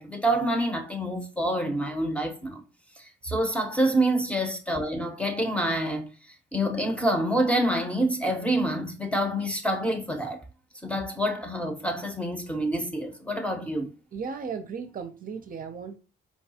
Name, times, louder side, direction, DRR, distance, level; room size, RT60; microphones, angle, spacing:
voice 1, 0.0-2.6 3.0-6.1 6.5-10.4 10.8-13.9, right 1 dB, 5° left, 0.8 m, -27 dB
voice 2, 14.1-16.0, right 5 dB, 45° right, 0.6 m, -36 dB
4.6 x 2.3 x 2.8 m
cardioid pair, 90°, 20 cm